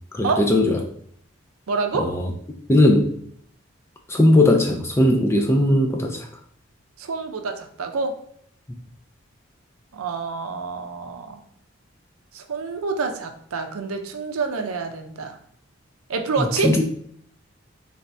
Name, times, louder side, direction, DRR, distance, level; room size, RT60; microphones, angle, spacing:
voice 1, 0.1-0.8 2.0-2.3 2.7-3.1 4.1-6.3 16.4-16.8, left 1 dB, 10° left, 2 dB, 0.3 m, -18 dB
voice 2, 1.7-2.1 7.0-8.1 9.9-11.4 12.3-15.4 16.1-16.7, right 4 dB, 90° right, 6 dB, 0.5 m, -27 dB
3.3 x 3.2 x 2.6 m, 0.66 s
head